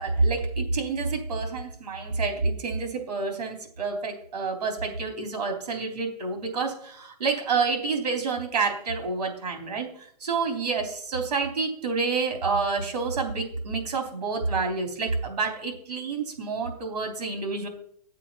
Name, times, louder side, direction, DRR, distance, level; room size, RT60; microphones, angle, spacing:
voice 1, 0.0-17.7, right 4 dB, 90° right, 4 dB, 3.5 m, -28 dB
10.5 x 7.5 x 5.8 m, 0.64 s
hypercardioid pair, 150°, 20 cm